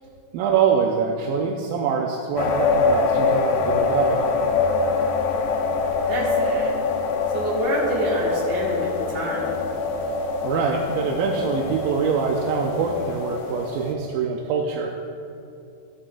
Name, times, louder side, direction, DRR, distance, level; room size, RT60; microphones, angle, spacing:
voice 1, 0.3-4.3 10.4-14.9, right 6 dB, 80° right, 1 dB, 2.1 m, -24 dB
sound 1, 2.4-13.9, left 4 dB, 75° left, 2.1 m, -24 dB
voice 2, 6.1-6.7 7.3-9.5, right 1 dB, 50° right, -5 dB, 2.8 m, -27 dB
14.5 x 9.8 x 2.5 m, 2.5 s
omnidirectional pair, 4.5 m